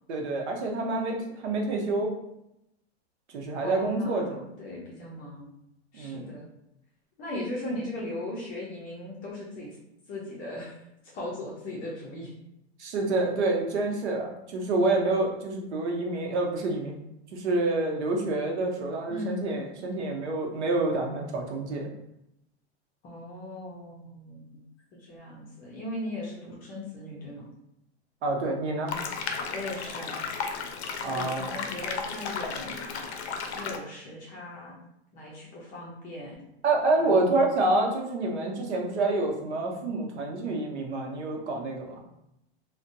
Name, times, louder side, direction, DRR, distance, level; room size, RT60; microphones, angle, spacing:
voice 1, 0.1-2.1 3.3-4.4 5.9-6.3 12.8-16.9 17.3-21.9 28.2-28.9 31.0-31.4 36.6-42.0, right 2 dB, 85° right, 1 dB, 0.7 m, -27 dB
voice 2, 3.6-5.5 5.9-6.5 7.2-9.8 10.1-10.8 11.1-12.3 19.1-19.4 23.0-24.5 24.9-27.5 29.5-30.2 31.1-33.1 33.5-34.8 35.1-36.3 37.0-37.4, left 1 dB, 25° left, -5 dB, 0.5 m, -38 dB
sound 1, 28.9-33.8, left 5 dB, 75° left, 0.5 m, -34 dB
2.5 x 2.1 x 2.5 m, 0.83 s
supercardioid pair, 140°, 33 cm